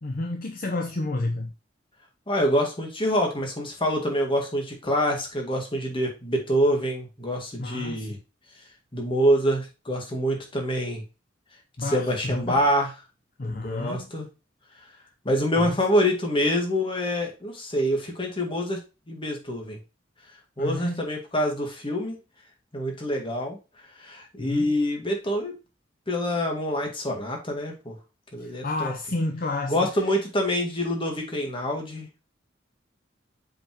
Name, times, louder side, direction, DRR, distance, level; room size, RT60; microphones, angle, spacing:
voice 1, 0.0-1.5 7.6-8.1 11.8-12.6 13.4-14.1 14.9-15.0 15.6-15.8 20.6-21.0 24.4-24.7 28.4-29.9, left 2 dB, 50° left, 3 dB, 0.8 m, -30 dB
voice 2, 2.3-8.2 8.9-11.0 11.8-12.9 13.4-14.3 15.2-19.8 20.6-22.2 22.7-23.6 24.0-25.5 26.1-28.0 28.3-28.9 29.7-32.2, equal, 30° left, 1 dB, 2.1 m, -26 dB
7.2 x 5.0 x 3.0 m, 0.28 s
head